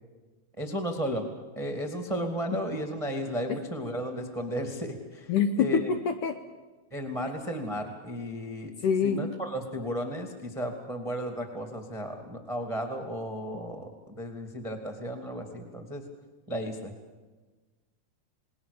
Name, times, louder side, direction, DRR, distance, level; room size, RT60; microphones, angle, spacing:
voice 1, 0.6-1.3 1.5-5.9 6.9-8.7 9.0-16.0 16.5-16.9, equal, 15° right, 3 dB, 1.4 m, -34 dB
voice 2, 5.3-6.4 8.8-9.2, left 6 dB, 70° left, 7 dB, 2.1 m, -25 dB
28.0 x 20.0 x 7.0 m, 1.3 s
omnidirectional pair, 4.6 m